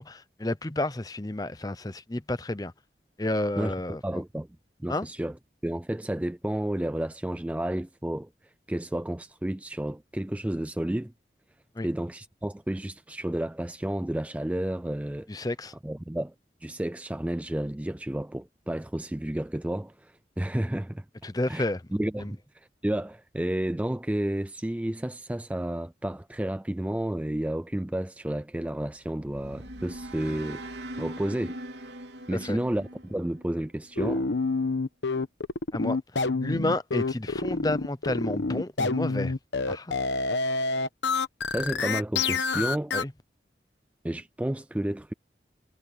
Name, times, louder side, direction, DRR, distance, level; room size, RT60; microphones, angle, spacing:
voice 1, 0.0-2.7 3.2-4.2 4.9-5.1 11.7-11.9 15.3-15.7 21.2-21.8 22.2-22.3 32.3-32.6 35.7-39.3 39.7-40.0 42.9-43.1, left 1 dB, 20° left, 0.7 m, -31 dB
voice 2, 3.6-4.5 4.8-5.4 5.6-11.1 11.8-15.5 15.8-16.3 16.6-21.6 21.9-30.6 31.0-31.9 32.3-34.3 41.5-42.9 44.0-45.1, right 1 dB, 10° right, 0.3 m, -31 dB
sound 1, 29.0-34.2, right 1 dB, 80° right, 3.1 m, -41 dB
sound 2, 34.0-43.0, left 3 dB, 90° left, 1.1 m, -28 dB
head